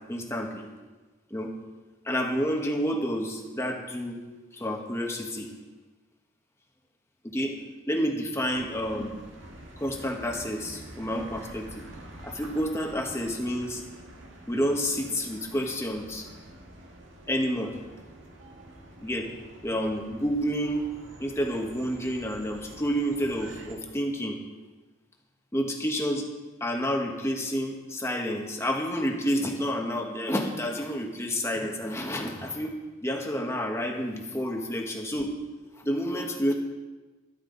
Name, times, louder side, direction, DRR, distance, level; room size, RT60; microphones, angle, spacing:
voice 1, 0.1-0.7 1.3-1.5 2.0-4.2 4.5-5.5 7.2-7.6 7.9-9.1 9.8-11.8 12.2-13.8 14.5-16.3 17.3-17.7 19.0-19.3 19.6-20.8 21.2-24.4 25.5-26.3 26.6-32.7 33.0-35.3 35.8-36.5, equal, 15° left, 1 dB, 1.4 m, -29 dB
sound 1, 8.4-23.8, right 1 dB, 75° right, 1.9 m, -47 dB
13.5 x 13.0 x 4.0 m, 1.2 s
head